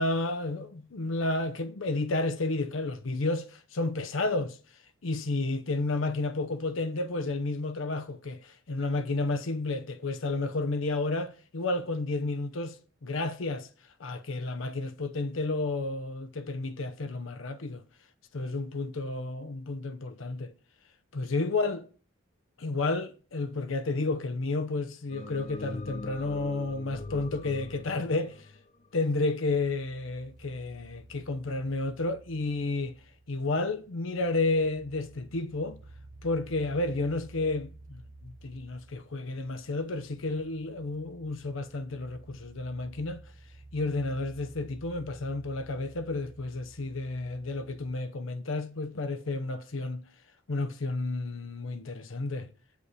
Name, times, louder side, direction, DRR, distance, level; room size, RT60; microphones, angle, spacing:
voice 1, 0.0-4.6 5.0-13.7 14.0-17.8 18.3-20.5 21.1-21.9 22.6-28.5 28.9-32.9 33.3-35.8 36.2-43.2 43.7-50.0 50.5-52.5, left 2 dB, 70° left, 0.7 m, -31 dB
sound 1, 25.1-29.5, left 2 dB, 35° left, 0.6 m, -42 dB
sound 2, 29.5-47.9, right 2 dB, 40° right, 1.3 m, -53 dB
8.3 x 8.2 x 4.8 m
head